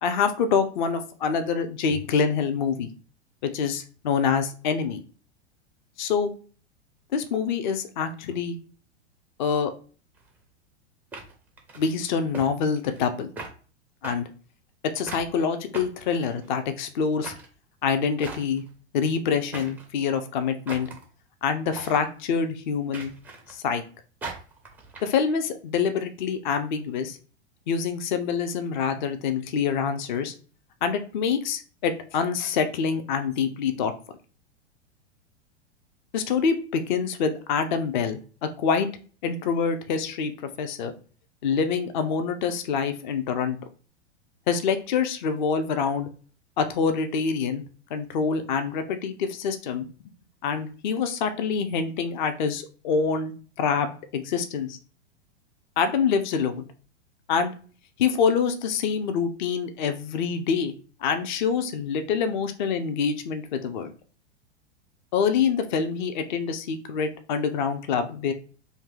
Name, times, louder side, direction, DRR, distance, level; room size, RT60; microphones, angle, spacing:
voice 1, 0.0-2.9 3.4-5.0 6.0-6.3 7.1-8.6 9.4-9.7 11.8-13.3 14.0-14.3 14.9-17.3 17.8-18.6 18.9-20.9 21.4-23.1 23.5-23.8 25.0-27.2 27.7-30.3 30.8-33.9 36.1-38.9 39.2-40.3 40.6-40.9 41.4-43.6 44.5-46.1 46.6-47.6 47.9-49.9 50.4-53.3 53.6-54.8 55.8-56.6 57.3-57.5 58.0-60.7 61.0-63.9 65.1-68.3, left 6 dB, 45° left, 8 dB, 0.6 m, -26 dB
sound 1, 10.2-10.3 11.1-11.9 12.3-12.5 12.8-13.1 13.4-13.5 14.0-14.1 15.1-15.3 15.7-16.6 17.2-17.5 18.2-18.7 19.5-19.9 20.7-21.0 21.7-22.0 22.9-23.6 24.2-25.0, right 3 dB, 5° right, 0.4 m, -39 dB
2.7 x 2.7 x 3.7 m, 0.39 s
figure-of-eight pair, 95°, 34 cm